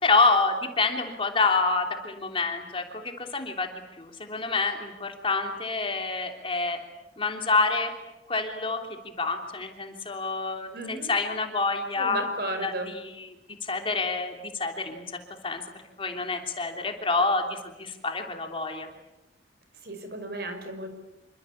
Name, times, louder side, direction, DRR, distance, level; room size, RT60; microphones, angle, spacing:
voice 1, 0.0-3.7 4.0-6.8 7.2-7.9 8.3-8.8 9.2-12.3 12.6-13.3 13.6-15.0 15.4-15.6 16.0-18.9, left 3 dB, 30° left, 4 dB, 3.2 m, -27 dB
voice 2, 10.7-11.1 12.0-12.9 19.8-20.9, right 2 dB, 55° right, 7 dB, 5.3 m, -34 dB
27.5 x 25.0 x 8.6 m, 0.99 s
head